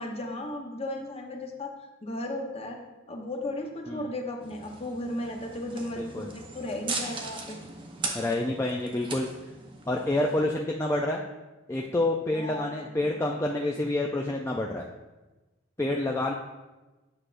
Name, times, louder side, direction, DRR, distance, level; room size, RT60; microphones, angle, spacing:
voice 1, 0.0-1.7 2.0-2.8 3.1-7.6 12.3-13.2, left 1 dB, 30° left, 2 dB, 0.8 m, -35 dB
sound 1, 4.4-10.5, right 3 dB, 25° right, 0.6 m, -39 dB
voice 2, 6.0-6.3 8.1-9.3 9.9-11.2 11.7-14.8 15.8-16.3, left 2 dB, 15° left, 0 dB, 0.3 m, -28 dB
8.7 x 6.4 x 2.5 m, 1.1 s
head